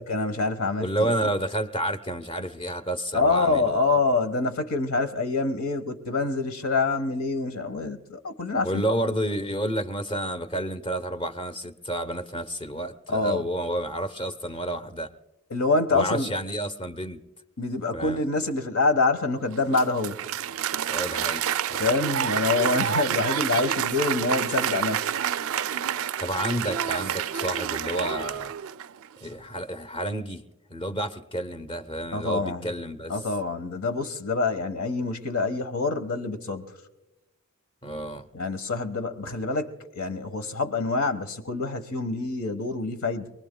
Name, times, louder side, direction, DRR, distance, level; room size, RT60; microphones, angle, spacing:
voice 1, 0.0-1.3 3.1-8.8 13.1-13.5 15.5-16.3 17.6-20.2 21.8-25.1 32.1-32.7 33.1-36.7 38.3-43.3, left 3 dB, 70° left, 1.4 m, -26 dB
voice 2, 0.8-4.0 8.6-15.1 15.9-17.2 17.9-18.2 20.9-21.9 26.2-28.5 29.2-30.4 30.7-33.1 37.8-38.3, right 1 dB, 25° left, 0.9 m, -30 dB
Applause, 19.5-29.1, right 9 dB, 70° right, 0.4 m, -28 dB
27.5 x 20.0 x 2.3 m
head